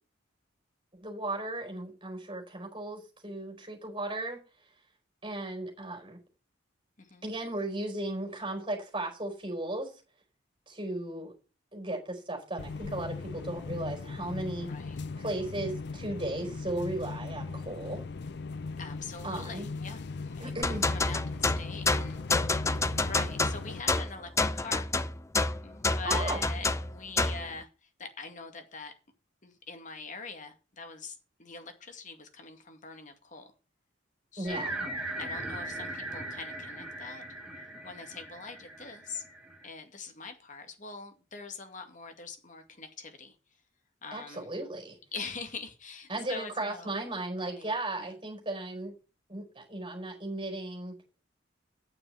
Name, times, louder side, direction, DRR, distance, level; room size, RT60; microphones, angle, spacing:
voice 1, 1.0-4.4 5.2-6.2 7.2-9.9 10.7-11.3 11.7-14.7 15.2-18.1 19.2-19.7 20.4-20.9 26.0-26.4 34.4-34.7 44.1-45.0 46.1-48.9 49.3-50.9, right 2 dB, 25° right, 4.7 m, -36 dB
voice 2, 7.0-7.3 14.7-15.0 18.8-22.7 23.0-24.9 25.6-28.9 29.4-33.5 34.3-34.9 35.2-37.2 37.8-39.2 39.6-43.4 44.0-44.5 45.1-46.9 47.3-47.7 48.0-48.1, left 4 dB, 40° left, 2.2 m, -43 dB
sound 1, 12.6-23.8, left 4 dB, 60° left, 0.6 m, -39 dB
sound 2, 20.6-27.5, left 3 dB, 15° left, 0.5 m, -28 dB
sound 3, 34.4-39.6, right 1 dB, 5° right, 3.5 m, -39 dB
9.2 x 7.0 x 7.9 m
head